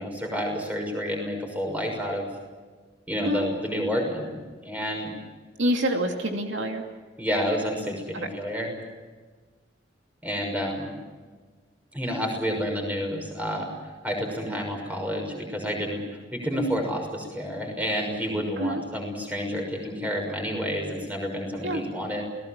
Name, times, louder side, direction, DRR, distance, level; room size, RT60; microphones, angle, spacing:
voice 1, 0.0-2.3 3.1-4.3 4.6-5.1 7.2-8.7 10.2-10.9 11.9-13.7 14.0-16.0 16.3-22.2, equal, 10° right, 2 dB, 6.1 m, -29 dB
voice 2, 5.6-6.8 8.1-8.3 18.6-18.8 21.6-21.8, equal, 75° right, 3 dB, 2.7 m, -26 dB
28.5 x 19.5 x 7.4 m, 1.4 s
head